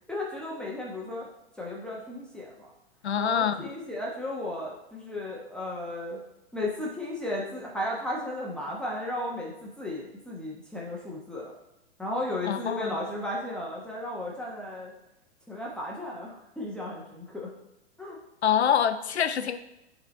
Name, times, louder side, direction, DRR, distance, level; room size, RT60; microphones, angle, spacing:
voice 1, 0.1-1.2 1.6-2.7 3.2-6.2 6.5-11.5 12.0-14.9 15.5-17.5 18.0-18.2, left 1 dB, ahead, -4 dB, 1.1 m, -34 dB
voice 2, 3.0-3.6 12.4-13.0 18.4-19.6, left 8 dB, 75° left, 11 dB, 0.7 m, -25 dB
9.0 x 4.0 x 4.0 m, 0.90 s
figure-of-eight pair, 110°, 34 cm